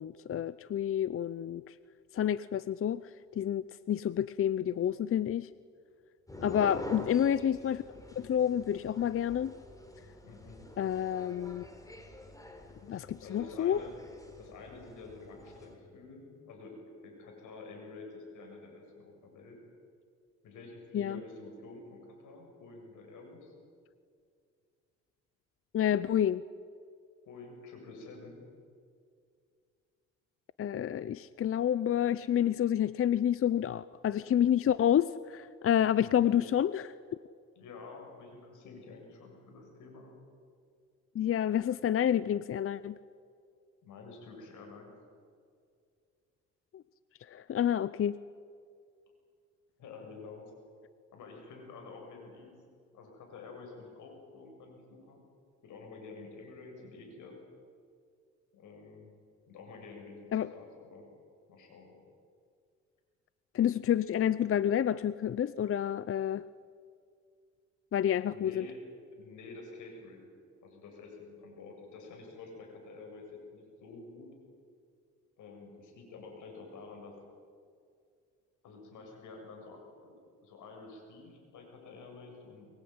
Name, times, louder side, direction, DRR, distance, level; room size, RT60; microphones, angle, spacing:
voice 1, 0.0-1.8 2.1-5.5 6.4-7.8 8.2-9.5 10.8-11.6 12.8-13.8 20.9-21.2 25.7-26.4 30.6-36.9 41.1-43.0 46.7-46.8 47.2-48.2 60.3-60.5 63.5-66.4 67.9-68.6, left 10 dB, 45° left, 16 dB, 0.6 m, -29 dB
sound 1, 6.3-15.7, left 1 dB, 10° left, 4.0 m, -46 dB
voice 2, 10.2-10.7 12.9-13.9 14.4-16.7 17.0-19.6 20.4-23.5 27.3-28.4 36.0-36.4 37.6-40.1 43.8-44.9 49.8-50.5 51.1-52.5 52.9-55.2 55.6-57.4 58.5-59.1 59.5-61.1 61.5-62.0 68.3-68.8 69.1-70.3 70.6-74.3 75.4-77.2 78.6-80.1 80.4-82.7, left 3 dB, 80° left, 2 dB, 7.7 m, -49 dB
23.0 x 22.5 x 9.6 m, 2.2 s
cardioid pair, 90°, 30 cm